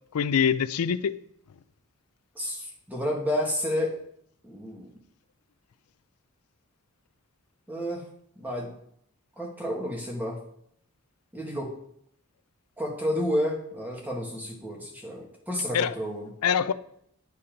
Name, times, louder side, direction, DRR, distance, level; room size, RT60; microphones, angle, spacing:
voice 1, 0.1-1.2 15.7-15.9 16.4-16.7, left 7 dB, 85° left, 0.4 m, -24 dB
voice 2, 2.3-3.9 4.4-4.9 7.7-8.0 8.3-8.7 9.4-10.4 11.3-11.7 12.8-16.3, equal, 10° right, 1.6 m, -30 dB
10.5 x 4.2 x 5.2 m
head